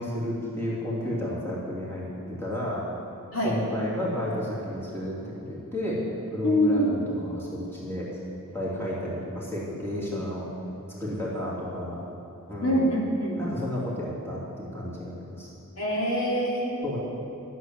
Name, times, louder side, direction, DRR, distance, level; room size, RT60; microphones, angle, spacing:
voice 1, 0.0-2.8 3.4-6.1 6.3-8.1 8.5-10.5 11.0-12.0 12.5-12.9 13.4-15.5 16.8-17.0, left 1 dB, 10° left, -7 dB, 2.9 m, -32 dB
voice 2, 6.4-6.9 12.6-13.4 15.8-16.8, equal, 70° left, -4 dB, 2.8 m, -24 dB
12.0 x 7.6 x 9.3 m, 3.0 s
head